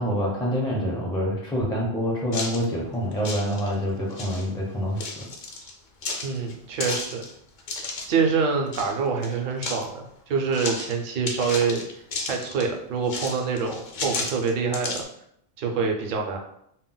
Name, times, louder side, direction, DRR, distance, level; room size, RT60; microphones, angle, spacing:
voice 1, 0.0-5.2, equal, 5° left, -3 dB, 0.4 m, -26 dB
sound 1, 2.3-2.7 3.1-3.8 4.1-4.5 5.0-5.7 6.0-8.1 8.7-9.0 9.2-9.9 10.5-10.9 11.3-12.7 13.1-15.0, left 3 dB, 55° left, 0.6 m, -33 dB
voice 2, 6.2-7.2 8.1-11.8 12.3-15.0 15.6-16.4, right 5 dB, 60° right, 2 dB, 0.7 m, -26 dB
2.2 x 2.1 x 3.8 m, 0.73 s
omnidirectional pair, 1.0 m